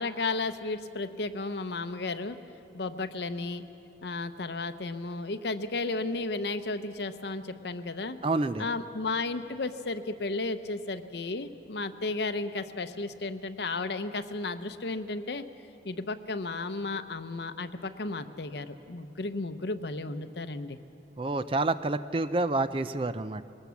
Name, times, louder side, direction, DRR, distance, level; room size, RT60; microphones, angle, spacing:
voice 1, 0.0-2.4 2.7-3.6 4.0-8.2 8.6-15.5 15.8-20.8, left 3 dB, 70° left, 10 dB, 0.8 m, -33 dB
voice 2, 8.2-8.6 21.2-23.4, right 2 dB, 30° right, 13 dB, 0.4 m, -28 dB
21.0 x 19.0 x 7.1 m, 2.7 s
head